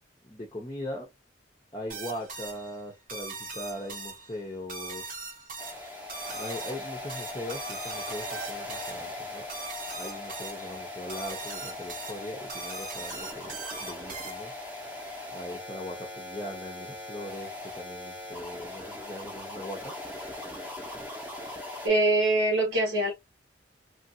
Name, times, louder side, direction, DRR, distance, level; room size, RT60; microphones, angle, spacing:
voice 1, 0.2-1.1 1.7-5.2 6.3-9.5 9.9-13.5 13.8-14.5 15.3-20.0, left 1 dB, 20° left, 0.7 m, -40 dB
sound 1, 1.9-14.7, right 3 dB, 45° right, 0.9 m, -41 dB
sound 2, 5.6-21.9, left 2 dB, 10° right, 0.8 m, -40 dB
voice 2, 21.8-23.1, right 2 dB, 80° right, 1.4 m, -23 dB
3.1 x 2.5 x 2.6 m
head